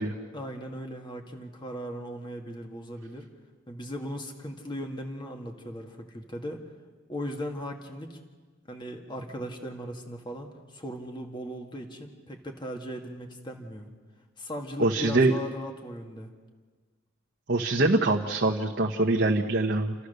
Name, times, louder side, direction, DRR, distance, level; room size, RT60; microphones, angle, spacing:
voice 1, 0.3-3.3 3.7-6.6 7.1-8.2 8.7-13.9 14.4-16.3, equal, 25° left, 3 dB, 1.6 m, -38 dB
voice 2, 14.8-15.3 17.5-19.9, right 2 dB, 55° right, -1 dB, 1.0 m, -24 dB
29.5 x 13.0 x 6.6 m, 1.5 s
head